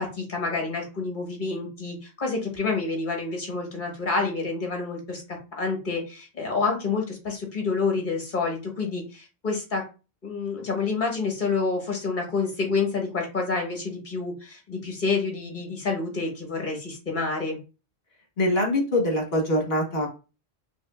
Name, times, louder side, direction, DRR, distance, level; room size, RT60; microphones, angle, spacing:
voice 1, 0.0-5.2 5.6-9.8 10.2-17.6, left 4 dB, 50° left, 1 dB, 1.5 m, -28 dB
voice 2, 18.4-20.1, left 1 dB, 65° left, 2 dB, 1.5 m, -23 dB
5.1 x 2.9 x 2.4 m, 0.31 s
omnidirectional pair, 1.1 m